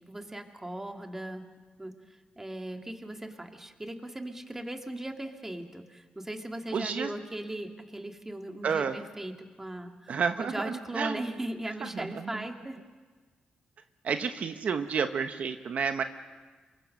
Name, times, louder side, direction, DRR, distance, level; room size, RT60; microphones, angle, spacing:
voice 1, 0.0-1.5 1.8-2.0 2.4-12.8, right 1 dB, 15° right, 4 dB, 2.1 m, -38 dB
voice 2, 6.7-7.1 8.6-9.0 10.1-11.3 11.9-12.4 14.0-16.0, right 6 dB, 60° right, 8 dB, 1.0 m, -30 dB
27.0 x 23.0 x 6.5 m, 1.4 s
cardioid pair, 95°, 3 cm